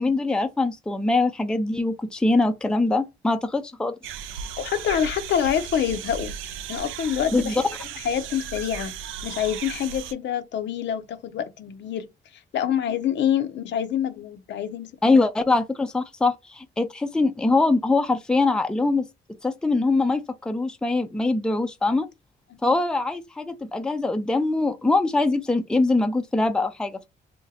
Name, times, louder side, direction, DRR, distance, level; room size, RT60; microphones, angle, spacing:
voice 1, 0.0-3.9 7.3-7.5 15.0-19.1 19.4-22.1 22.6-27.1, left 3 dB, 5° left, 0.4 m, -23 dB
sound 1, 4.0-10.1, right 8 dB, 90° right, 0.4 m, -36 dB
voice 2, 4.6-6.3 6.7-7.6 8.0-9.0 9.2-12.1 12.5-15.2 22.6-22.8, left 9 dB, 65° left, 0.6 m, -26 dB
2.7 x 2.1 x 3.9 m
cardioid pair, 90°, 20 cm